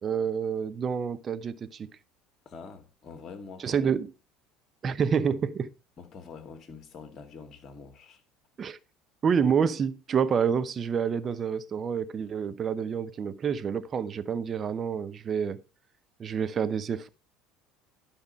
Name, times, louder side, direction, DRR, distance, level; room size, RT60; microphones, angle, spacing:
voice 1, 0.0-1.9 3.6-4.1 4.8-5.7 8.6-8.8 9.2-15.6 16.2-17.1, right 7 dB, 35° right, 0.8 m, -28 dB
voice 2, 2.5-3.8 6.0-8.2, left 5 dB, 35° left, 1.9 m, -45 dB
12.0 x 5.2 x 4.6 m
figure-of-eight pair, 65°, 0 cm